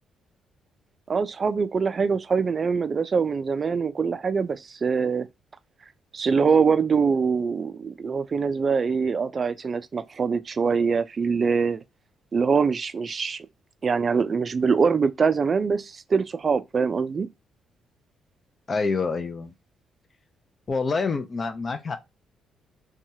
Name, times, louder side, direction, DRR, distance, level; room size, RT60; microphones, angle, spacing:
voice 1, 1.1-5.3 6.1-11.8 12.3-13.5 13.8-17.3, right 5 dB, 40° right, 0.3 m, -23 dB
voice 2, 18.7-19.5 20.7-22.0, left 4 dB, 40° left, 0.5 m, -27 dB
2.8 x 2.3 x 2.7 m
cardioid pair, 90°, 0 cm